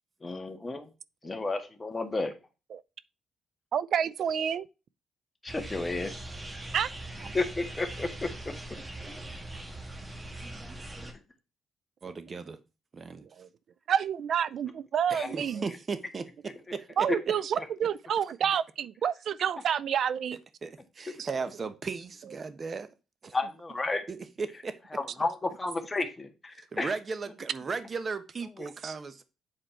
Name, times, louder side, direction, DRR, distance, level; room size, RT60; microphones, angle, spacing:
voice 1, 0.2-0.9 1.2-2.3 5.4-6.1 7.3-8.5 15.1-15.4 23.3-24.1 24.9-26.9 28.6-28.7, left 3 dB, 20° left, 1.7 m, -32 dB
voice 2, 3.7-4.7 6.7-6.9 7.2-7.3 13.4-13.5 13.9-15.6 17.0-20.4 21.2-21.3 28.8-28.9, right 8 dB, 65° right, 0.4 m, -29 dB
sound 1, 5.5-11.1, right 1 dB, 20° right, 1.5 m, -41 dB
voice 3, 12.0-12.6 12.9-13.3 15.1-16.3 16.7-17.1 20.6-22.9 23.2-23.3 24.1-24.8 26.6-29.2, right 4 dB, 40° right, 1.1 m, -36 dB
7.8 x 4.3 x 4.4 m
cardioid pair, 90°, 0 cm